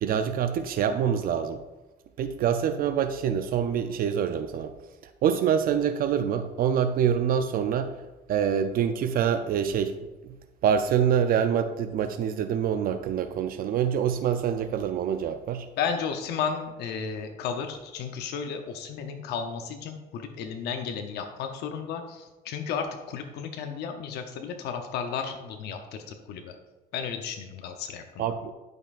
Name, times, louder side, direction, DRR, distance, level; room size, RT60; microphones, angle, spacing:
voice 1, 0.0-1.6 2.2-4.7 5.2-7.9 8.3-10.0 10.6-15.7 28.2-28.5, right 8 dB, 60° right, 9 dB, 0.5 m, -25 dB
voice 2, 15.8-26.5 26.9-28.3, left 6 dB, 75° left, 5 dB, 0.7 m, -33 dB
12.0 x 5.3 x 2.5 m, 1.1 s
cardioid pair, 110°, 17 cm